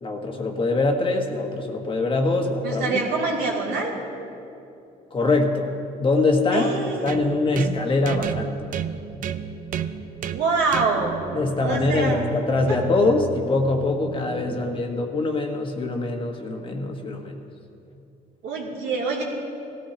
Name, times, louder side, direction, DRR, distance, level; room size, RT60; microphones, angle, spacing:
voice 1, 0.0-3.0 5.1-6.7 7.0-8.6 11.3-17.4, left 2 dB, 30° left, 3 dB, 1.3 m, -23 dB
voice 2, 2.6-3.9 6.5-7.4 10.3-11.1 11.6-12.2 12.7-12.8 18.4-19.2, right 4 dB, 75° right, -3 dB, 2.8 m, -25 dB
sound 1, 7.1-14.8, right 8 dB, 55° right, 0.5 m, -33 dB
18.0 x 14.5 x 2.9 m, 2.7 s
cardioid pair, 110°, 17 cm